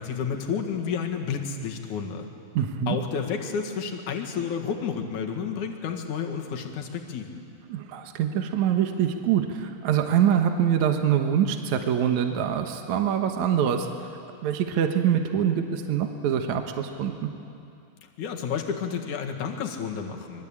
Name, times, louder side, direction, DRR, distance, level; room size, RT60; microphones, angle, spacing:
voice 1, 0.0-2.3 2.9-7.4 18.2-20.5, left 6 dB, 60° left, 2 dB, 3.1 m, -31 dB
voice 2, 2.5-3.0 7.7-13.9 14.4-17.3, right 9 dB, 60° right, 5 dB, 2.3 m, -24 dB
25.5 x 23.0 x 8.7 m, 2.5 s
omnidirectional pair, 4.3 m